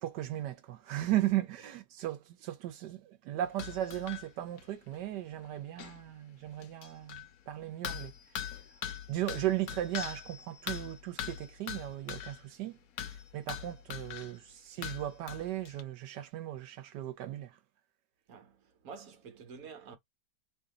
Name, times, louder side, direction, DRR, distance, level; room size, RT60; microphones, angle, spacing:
voice 1, 0.0-8.5 9.1-12.8 13.3-17.6, right 13 dB, 90° right, 1.3 m, -36 dB
sound 1, 3.4-4.3 4.6-4.7 4.9-5.0 5.4-5.5 5.8-6.0 6.6-7.3 7.8-12.5 13.0-14.4 14.8-15.8, left 9 dB, 65° left, 1.0 m, -41 dB
voice 2, 18.3-20.0, right 5 dB, 60° right, 1.4 m, -49 dB
2.9 x 2.7 x 3.7 m
omnidirectional pair, 1.8 m